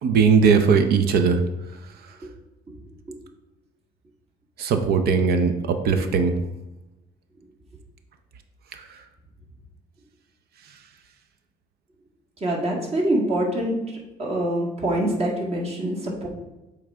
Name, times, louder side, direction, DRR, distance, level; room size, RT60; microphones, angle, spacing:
voice 1, 0.0-1.4 2.1-2.2 4.6-6.3 8.7-8.9, right 5 dB, 65° right, 7 dB, 0.6 m, -19 dB
voice 2, 12.4-16.3, right 1 dB, 35° right, -1 dB, 1.7 m, -25 dB
8.5 x 3.3 x 3.5 m, 1.0 s
cardioid pair, 110°, 17 cm